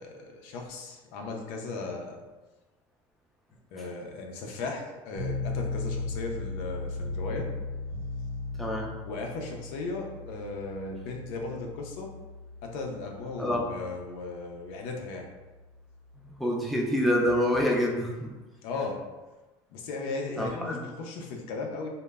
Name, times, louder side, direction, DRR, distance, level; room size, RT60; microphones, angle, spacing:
voice 1, 0.0-2.2 3.7-7.5 9.0-12.1 12.6-15.3 18.6-19.0 19.7-21.9, left 3 dB, 80° left, 1 dB, 0.5 m, -36 dB
sound 1, 5.1-16.3, left 3 dB, 65° right, 0.9 m, -37 dB
voice 2, 8.6-8.9 13.4-13.6 16.2-18.3 20.4-20.8, equal, ahead, -2 dB, 0.4 m, -27 dB
2.1 x 2.0 x 3.4 m, 1.2 s
cardioid pair, 125°, 10 cm